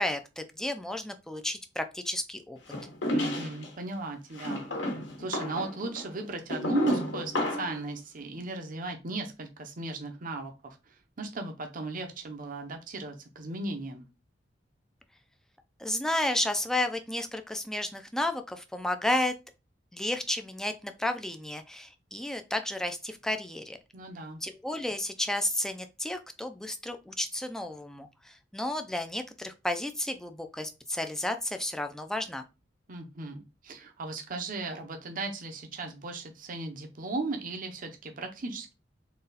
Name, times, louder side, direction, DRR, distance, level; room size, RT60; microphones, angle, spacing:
voice 1, 0.0-2.6 15.8-19.3 19.9-23.8 24.4-32.4, left 1 dB, 5° left, 0.4 m, -32 dB
sound 1, 2.7-3.7 4.3-7.8, left 1 dB, 75° left, 1.2 m, -32 dB
voice 2, 3.1-4.6 5.2-14.1 23.9-24.4 32.9-38.7, right 3 dB, 50° right, 0.7 m, -36 dB
4.0 x 2.3 x 4.0 m
head